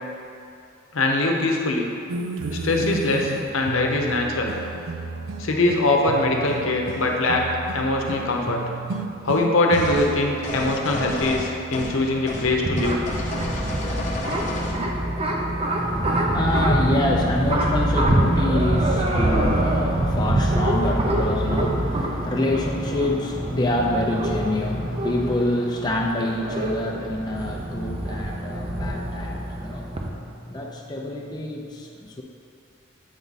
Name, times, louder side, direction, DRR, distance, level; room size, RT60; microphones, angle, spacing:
voice 1, 0.9-1.9 2.5-4.5 5.4-7.4 7.7-8.6 9.2-13.0, left 2 dB, 75° left, 1 dB, 0.8 m, -22 dB
sound 1, 2.1-12.7, right 3 dB, 85° right, 0.4 m, -33 dB
sound 2, 9.7-10.1 10.4-12.0 12.3-12.5 12.8-14.8, left 2 dB, 35° left, 0.8 m, -31 dB
sound 3, 12.0-30.1, right 1 dB, 30° right, 0.6 m, -25 dB
voice 2, 15.8-32.2, left 1 dB, 20° left, -1 dB, 0.4 m, -26 dB
8.0 x 4.6 x 4.0 m, 2.5 s
head